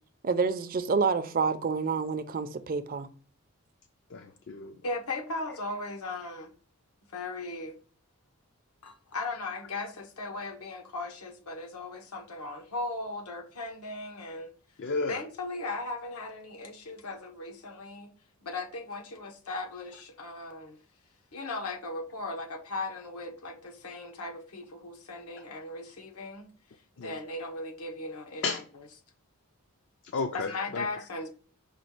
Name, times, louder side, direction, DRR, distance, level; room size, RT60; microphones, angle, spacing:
voice 1, 0.2-3.1, right 5 dB, 40° right, 0.4 m, -28 dB
voice 2, 4.1-4.8 14.8-15.2 27.0-27.2 28.4-28.6 30.0-30.9, left 4 dB, 50° left, 0.4 m, -33 dB
voice 3, 4.8-6.5 7.1-7.8 8.8-14.5 15.1-18.1 18.4-20.8 21.3-26.5 27.0-28.4 30.3-31.3, left 2 dB, 80° left, 1.0 m, -37 dB
5.2 x 2.3 x 4.4 m
head